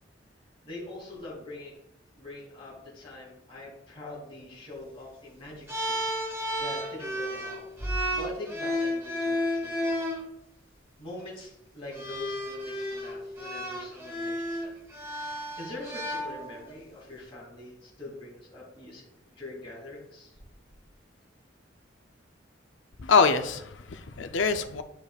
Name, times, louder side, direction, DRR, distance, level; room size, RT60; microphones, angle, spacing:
voice 1, 0.6-1.8 2.2-6.0 6.3-7.7 8.1-10.1 11.0-14.8 15.3-20.4, left 2 dB, 30° left, -5 dB, 2.8 m, -43 dB
sound 1, 5.7-10.2 11.2-11.4 11.9-16.7, equal, 15° right, 2.6 m, -32 dB
voice 2, 23.0-24.8, left 5 dB, 80° left, 8 dB, 0.6 m, -24 dB
10.5 x 5.1 x 2.4 m, 0.80 s
head